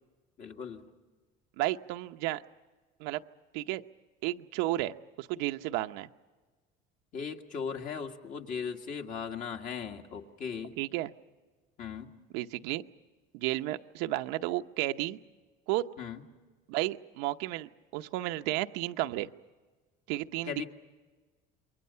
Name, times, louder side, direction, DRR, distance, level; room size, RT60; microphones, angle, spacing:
voice 1, 0.4-0.9 7.1-10.7 11.8-12.1 16.0-16.2 20.4-20.6, left 6 dB, 45° left, 4 dB, 1.9 m, -38 dB
voice 2, 1.6-2.4 3.0-3.2 3.5-3.8 4.2-4.9 5.2-6.1 10.8-11.1 12.3-12.8 13.3-15.2 15.7-15.8 16.7-19.3 20.1-20.6, right 16 dB, 90° right, 8 dB, 0.8 m, -32 dB
28.5 x 22.5 x 5.6 m, 1.3 s
cardioid pair, 135°, 18 cm